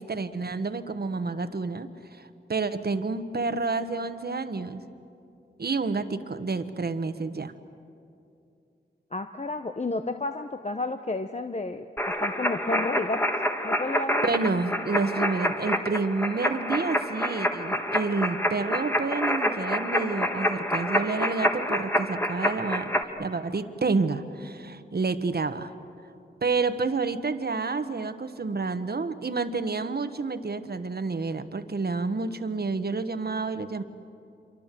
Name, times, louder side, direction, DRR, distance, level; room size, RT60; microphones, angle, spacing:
voice 1, 0.0-4.8 5.6-7.5 14.1-25.7 26.4-33.8, right 4 dB, 55° right, 10 dB, 1.2 m, -29 dB
voice 2, 9.1-11.9 12.2-13.2 13.6-14.2, left 3 dB, 35° left, 7 dB, 0.9 m, -31 dB
sound 1, 12.0-23.0, equal, 10° left, 1.7 m, -27 dB
27.0 x 24.0 x 7.6 m, 2.7 s
wide cardioid pair, 60°, 19 cm